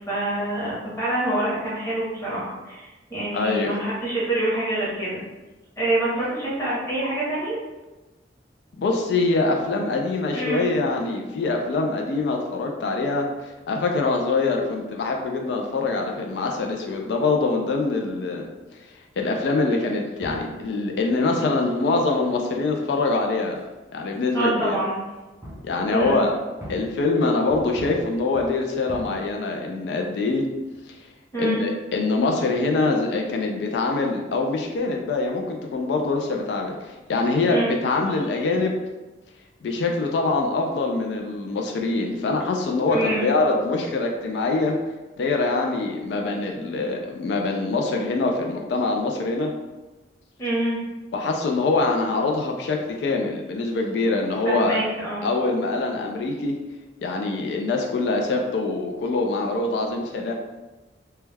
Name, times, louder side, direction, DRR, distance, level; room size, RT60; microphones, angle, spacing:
voice 1, 0.0-5.2 5.8-7.6 10.3-10.6 24.3-25.0 25.9-26.2 31.3-31.6 37.5-37.8 42.9-43.3 50.4-50.8 54.4-55.3, right 1 dB, 15° left, -7 dB, 0.8 m, -26 dB
voice 2, 3.3-3.7 8.8-18.4 19.2-23.6 23.9-24.8 25.6-26.3 26.7-30.5 31.4-38.7 39.6-44.8 45.2-49.5 51.1-54.8 55.2-56.6 57.0-60.3, left 3 dB, 70° left, 2 dB, 0.3 m, -24 dB
sound 1, 20.2-24.5 24.8-30.9, equal, 15° right, 0.5 m, -44 dB
2.2 x 2.1 x 3.2 m, 1.1 s
head